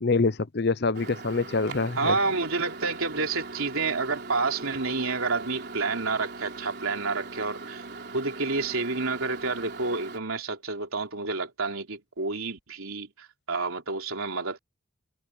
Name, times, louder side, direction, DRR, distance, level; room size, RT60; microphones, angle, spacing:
voice 1, 0.0-2.1, left 3 dB, 50° left, 0.7 m, -25 dB
Microwave oven, 0.9-10.2, right 3 dB, 50° right, 4.1 m, -41 dB
voice 2, 2.0-7.8 8.1-14.6, right 3 dB, 85° right, 3.6 m, -29 dB
head